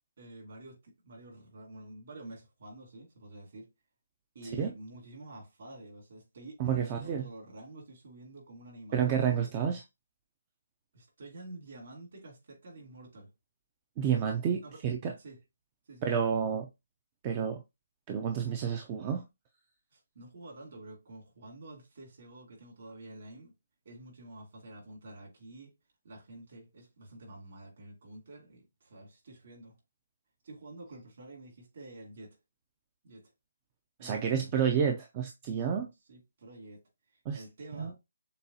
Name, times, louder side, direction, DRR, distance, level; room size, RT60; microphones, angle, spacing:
voice 1, 0.2-3.7 4.3-9.1 9.4-9.5 10.9-13.3 14.6-14.8 15.2-15.4 15.9-16.2 19.9-23.5 23.8-25.7 26.0-29.7 30.4-32.4 33.0-33.3 34.0-34.5 36.1-36.8 37.1-38.0, right 2 dB, 50° right, 2.5 m, -49 dB
voice 2, 6.6-7.2 8.9-9.8 14.0-15.1 16.0-16.7 17.2-17.6 18.1-19.2 34.0-35.9 37.3-37.4 37.8-37.9, right 7 dB, 20° right, 0.4 m, -30 dB
6.8 x 2.3 x 2.7 m
hypercardioid pair, 170°, 0 cm